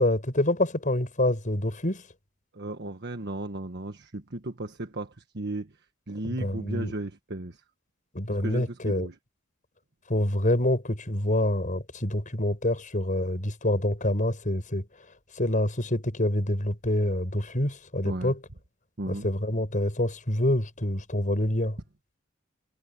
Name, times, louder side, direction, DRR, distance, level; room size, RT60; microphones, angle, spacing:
voice 1, 0.0-2.0 6.2-6.9 8.1-9.1 10.1-14.9 15.4-18.4 19.1-21.8, left 1 dB, 40° left, 6.0 m, -26 dB
voice 2, 2.5-5.7 6.1-7.6 8.4-9.1 18.0-18.3 19.0-19.3, right 2 dB, 55° right, 1.5 m, -35 dB
head